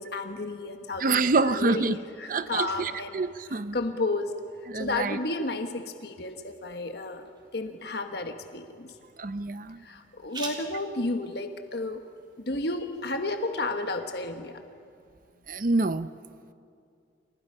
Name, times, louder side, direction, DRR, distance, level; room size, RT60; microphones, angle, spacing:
voice 1, 0.0-3.2 3.7-4.4 4.8-7.2 7.5-8.9 9.8-12.0 12.4-14.6, left 2 dB, 60° left, 6 dB, 1.3 m, -32 dB
voice 2, 1.0-2.0 2.3-3.8 4.7-5.2 9.2-9.8 15.5-16.1, right 3 dB, 50° right, 12 dB, 0.7 m, -26 dB
sound 1, 6.3-13.8, right 3 dB, 25° right, 3.4 m, -48 dB
28.5 x 28.0 x 5.6 m, 2.3 s
head